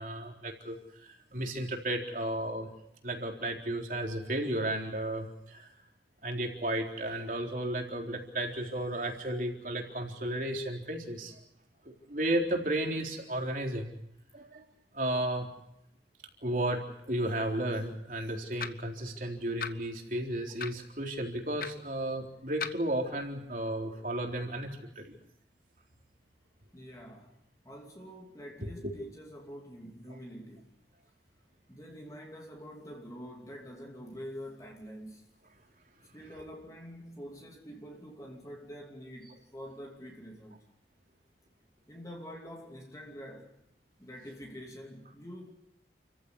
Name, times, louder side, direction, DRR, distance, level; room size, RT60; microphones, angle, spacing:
voice 1, 0.0-2.7 3.0-5.7 6.2-11.3 11.8-14.0 14.3-14.6 14.9-15.5 16.4-24.7 25.0-25.2 28.6-28.9, right 1 dB, 50° right, 3.9 m, -33 dB
sound 1, 18.6-18.9 19.6-19.8 20.6-20.8 21.6-21.7 22.6-22.8, left 6 dB, 55° left, 1.1 m, -37 dB
voice 2, 26.7-30.8 31.1-31.2 31.7-35.3 36.1-40.7 41.9-43.5 44.0-45.5, equal, 20° left, 2.8 m, -46 dB
29.5 x 15.0 x 8.4 m
head